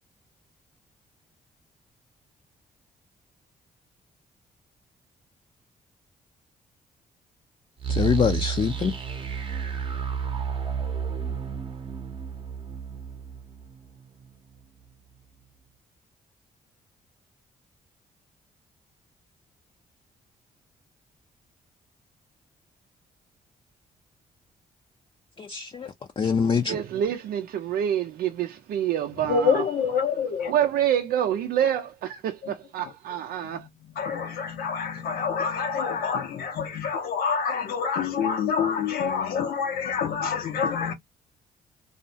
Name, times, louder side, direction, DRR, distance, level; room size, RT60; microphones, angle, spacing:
sound 1, 7.8-14.6, right 6 dB, 35° right, 0.7 m, -32 dB
voice 1, 7.9-9.0 25.4-26.8, left 6 dB, 35° left, 0.4 m, -25 dB
voice 2, 26.7-29.6 30.5-33.7, right 10 dB, 80° right, 0.4 m, -27 dB
voice 3, 29.3-30.6 32.4-32.5 32.8-32.9 33.5-40.9, left 6 dB, 85° left, 0.8 m, -27 dB
2.4 x 2.0 x 2.6 m
cardioid pair, 80°, 15 cm